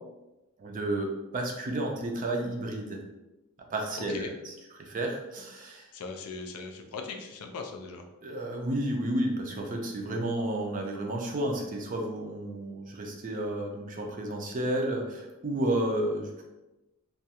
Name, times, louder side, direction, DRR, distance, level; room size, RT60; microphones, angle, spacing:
voice 1, 0.6-3.0 3.7-5.9 8.2-16.4, right 1 dB, 35° right, 2 dB, 0.4 m, -32 dB
voice 2, 4.0-4.3 5.9-8.0, left 4 dB, 75° left, 4 dB, 0.4 m, -39 dB
2.3 x 2.2 x 2.8 m, 0.99 s
head